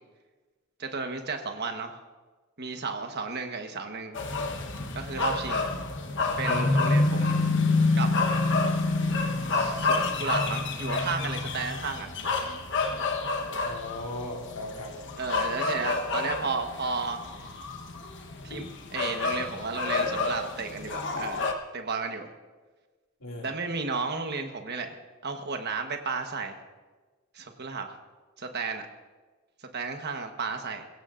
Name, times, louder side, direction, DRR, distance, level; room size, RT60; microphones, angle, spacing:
voice 1, 0.8-2.0 2.6-4.2 4.9-5.7 6.4-7.4 7.9-8.1 9.5-12.1 15.1-17.2 18.4-22.3 23.4-25.0 25.2-26.6 27.3-27.9 28.4-28.9 29.7-30.8, right 4 dB, 50° right, 5 dB, 1.3 m, -33 dB
sound 1, 4.1-21.5, left 3 dB, 55° left, 1.2 m, -28 dB
voice 2, 6.4-6.8 13.6-14.9 23.2-23.5, left 1 dB, 80° left, 0 dB, 2.5 m, -37 dB
22.0 x 16.5 x 2.6 m, 1.3 s
head